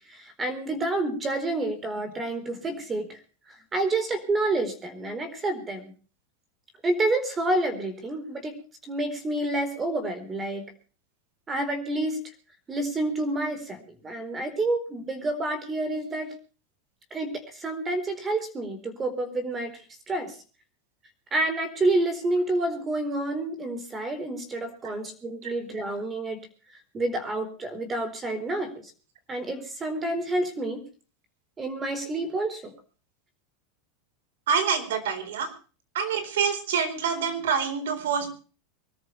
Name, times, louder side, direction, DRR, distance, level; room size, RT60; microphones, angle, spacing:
voice 1, 0.1-3.2 3.7-5.9 6.8-8.6 8.8-10.6 11.5-12.2 12.7-16.3 17.1-19.7 20.1-20.4 21.3-26.4 26.9-28.9 29.3-30.8 31.6-32.7, right 2 dB, 20° right, 11 dB, 4.2 m, -29 dB
voice 2, 34.5-35.5 35.9-38.3, right 6 dB, 85° right, 10 dB, 4.4 m, -26 dB
24.0 x 13.5 x 3.3 m, 0.37 s
supercardioid pair, 145°, 0 cm